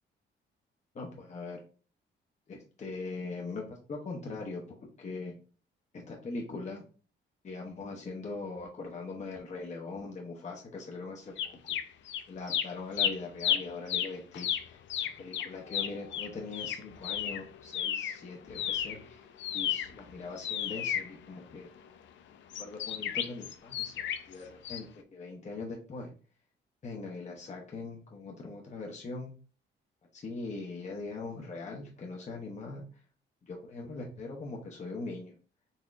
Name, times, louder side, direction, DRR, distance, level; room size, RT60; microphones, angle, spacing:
voice 1, 0.9-1.6 2.5-5.3 5.9-6.8 7.4-11.6 12.3-21.7 22.6-26.1 26.8-29.3 30.1-33.0 33.4-35.4, left 3 dB, 35° left, 0 dB, 0.7 m, -41 dB
sound 1, 11.4-12.2 12.5-18.2 18.5-21.8 22.5-24.3 24.6-24.8, left 9 dB, 70° left, 0.5 m, -33 dB
4.0 x 2.9 x 2.4 m, 0.38 s
cardioid pair, 90°, 20 cm